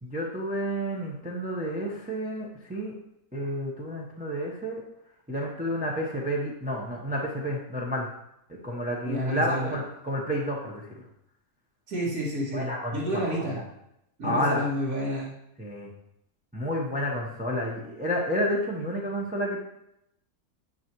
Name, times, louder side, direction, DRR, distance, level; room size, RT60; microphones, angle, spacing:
voice 1, 0.0-2.9 3.3-4.8 5.3-8.1 8.5-11.0 12.5-13.6 14.2-14.6 15.6-15.9 16.5-19.6, equal, 5° right, -3 dB, 0.8 m, -30 dB
voice 2, 9.0-9.8 11.9-13.6 14.2-15.3, equal, 55° right, -11 dB, 2.5 m, -30 dB
9.9 x 6.0 x 3.1 m, 0.81 s
omnidirectional pair, 1.8 m